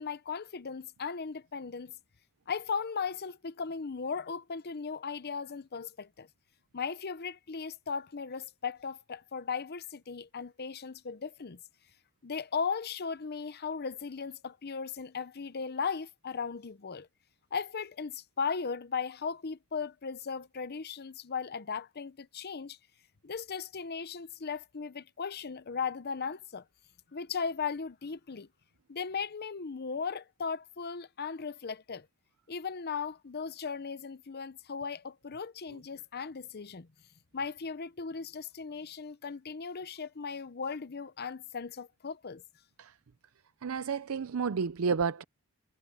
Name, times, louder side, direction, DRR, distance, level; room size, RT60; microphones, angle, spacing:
voice 1, 0.0-1.9 2.5-6.3 6.7-11.6 12.2-17.1 17.5-22.8 23.2-26.6 27.1-28.5 28.9-32.1 32.5-36.9 37.3-42.4, left 5 dB, 50° left, 0.7 m, -37 dB
voice 2, 43.6-45.2, right 5 dB, 70° right, 0.5 m, -31 dB
head